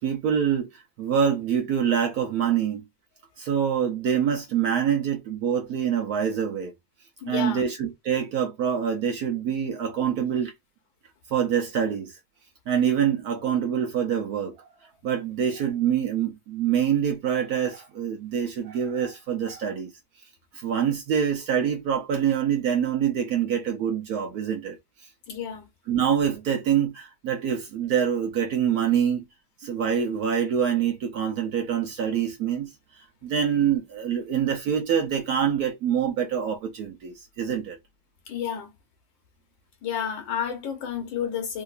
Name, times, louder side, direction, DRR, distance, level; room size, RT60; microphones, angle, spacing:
voice 1, 0.0-2.8 3.4-6.7 7.3-10.5 11.3-12.1 12.7-14.7 15.0-19.9 20.5-24.8 25.9-29.2 29.6-32.7 33.2-37.8, right 8 dB, 65° right, 1.0 m, -25 dB
voice 2, 7.2-7.7 25.3-25.6 38.3-38.7 39.8-41.6, left 8 dB, 85° left, 1.7 m, -31 dB
3.6 x 2.7 x 2.4 m
omnidirectional pair, 2.1 m